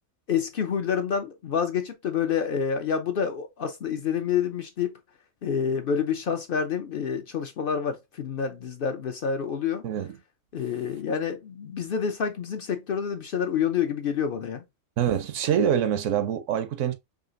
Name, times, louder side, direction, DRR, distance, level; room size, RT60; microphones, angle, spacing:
voice 1, 0.3-5.0 5.4-9.8 10.5-14.6, left 7 dB, 60° left, 0.6 m, -28 dB
voice 2, 9.8-10.2 15.0-16.9, right 9 dB, 75° right, 0.9 m, -25 dB
4.9 x 2.7 x 2.5 m
omnidirectional pair, 1.3 m